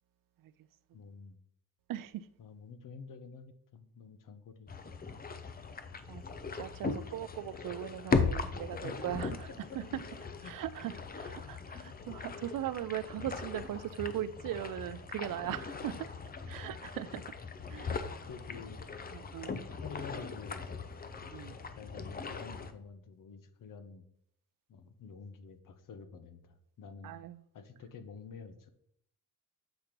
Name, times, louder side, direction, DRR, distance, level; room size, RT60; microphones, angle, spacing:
voice 1, 0.9-1.4 2.4-4.9 8.8-10.0 10.4-10.6 10.8-10.9 11.4-11.6 18.3-18.8 19.7-20.8 21.5-24.0 24.7-27.1 27.5-28.7, left 5 dB, 60° left, 0.8 m, -49 dB
voice 2, 1.9-2.3 6.1-6.2 6.5-9.5 9.7-10.0 10.5-15.9 16.5-17.2 17.7-17.9 19.1-19.5 21.3-21.6 27.0-27.4, right 12 dB, 65° right, 0.5 m, -39 dB
sound 1, 4.7-22.7, left 4 dB, 25° left, 0.5 m, -39 dB
7.9 x 2.9 x 5.1 m
cardioid pair, 105°, 36 cm